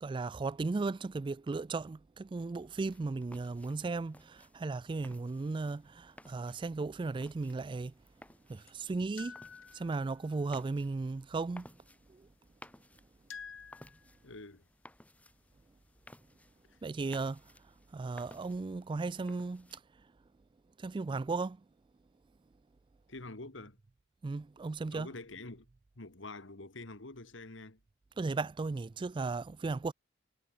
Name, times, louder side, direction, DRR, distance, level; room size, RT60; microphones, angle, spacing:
voice 1, 0.0-7.9 8.5-9.4 9.7-11.7 12.1-12.3 16.8-17.4 17.9-19.8 20.8-21.6 24.2-25.1 28.2-29.9, right 3 dB, 25° right, 0.3 m, -36 dB
sound 1, 2.5-19.8, left 1 dB, 5° left, 6.6 m, -59 dB
sound 2, 7.4-7.5 8.7-8.8 9.2-10.6 12.6-12.7 13.3-14.2, left 6 dB, 90° left, 4.7 m, -50 dB
voice 2, 14.2-14.7 16.7-16.8 23.1-23.8 24.9-25.7 26.0-27.8, left 2 dB, 65° left, 2.1 m, -46 dB
head